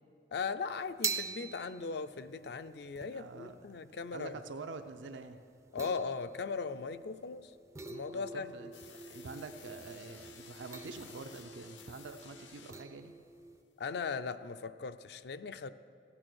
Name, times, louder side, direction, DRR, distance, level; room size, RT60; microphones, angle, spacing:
voice 1, 0.3-4.4 5.7-7.5 7.9-8.5 13.8-15.7, left 5 dB, 60° left, 11 dB, 0.4 m, -38 dB
sound 1, 0.7-13.6, right 5 dB, 15° right, 0.3 m, -45 dB
voice 2, 3.1-3.6 4.1-5.4 8.1-8.7 9.1-13.2, right 3 dB, 90° right, 7 dB, 0.6 m, -46 dB
sound 2, 8.7-13.0, left 7 dB, 90° left, 1.0 m, -55 dB
15.0 x 8.9 x 6.2 m, 2.5 s
head